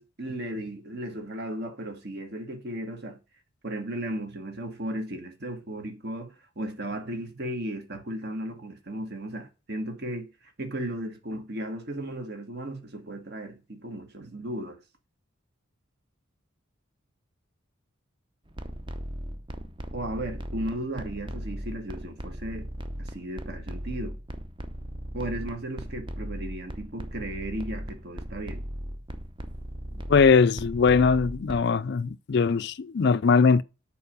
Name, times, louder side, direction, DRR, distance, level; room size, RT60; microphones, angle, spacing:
voice 1, 0.0-3.2 3.6-10.3 10.6-14.8 19.9-22.7 23.0-24.2 25.1-28.7, right 1 dB, 50° right, 1.6 m, -35 dB
sound 1, 18.5-31.6, equal, 25° right, 0.8 m, -37 dB
voice 2, 30.1-33.6, left 5 dB, 50° left, 0.4 m, -21 dB
7.0 x 4.8 x 6.7 m
head